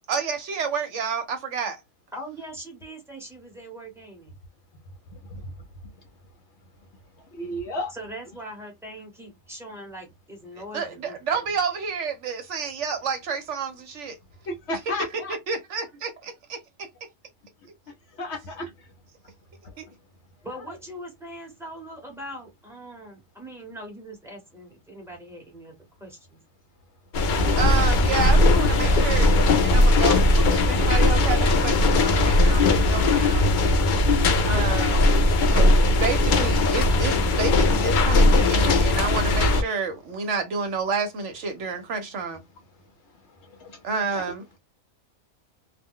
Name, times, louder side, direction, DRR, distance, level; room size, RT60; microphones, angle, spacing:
voice 1, 0.1-1.8 10.7-14.2 15.5-16.6 19.8-19.9 27.6-33.5 34.4-35.1 35.5-42.4 43.8-44.6, right 5 dB, 65° right, 0.9 m, -30 dB
voice 2, 2.1-4.3 7.9-11.4 20.4-26.4, right 1 dB, ahead, 0.9 m, -41 dB
voice 3, 7.4-7.9 14.5-15.3 18.2-18.7 20.5-20.8 44.1-44.2, left 1 dB, 65° left, 0.8 m, -32 dB
sound 1, 27.1-39.6, left 2 dB, 85° left, 0.4 m, -19 dB
2.4 x 2.1 x 3.5 m
omnidirectional pair, 1.4 m